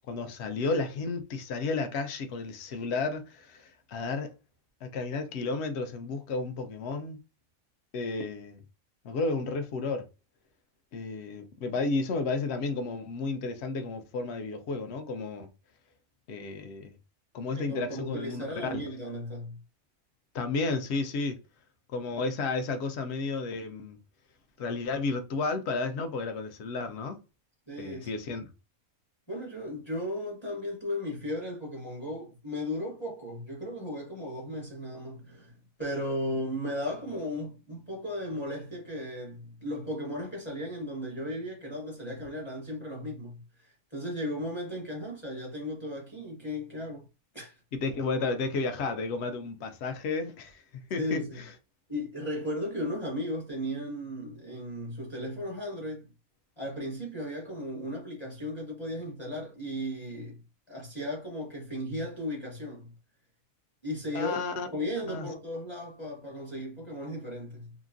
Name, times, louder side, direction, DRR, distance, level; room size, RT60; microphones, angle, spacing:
voice 1, 0.1-4.3 4.8-7.2 7.9-8.6 9.0-10.1 10.9-15.5 16.3-16.9 17.3-18.4 18.7-18.8 20.3-21.4 21.9-24.0 24.6-27.2 27.8-28.5 47.7-50.6 50.9-51.5 64.1-64.7 65.0-65.3, left 3 dB, 60° left, 0.8 m, -32 dB
voice 2, 17.5-19.6 27.7-28.3 29.3-47.0 47.3-47.6 51.0-51.4 51.9-56.1 56.6-60.4 60.7-62.9 63.8-67.7, left 1 dB, 25° left, 0.8 m, -36 dB
3.0 x 2.5 x 2.5 m
omnidirectional pair, 1.4 m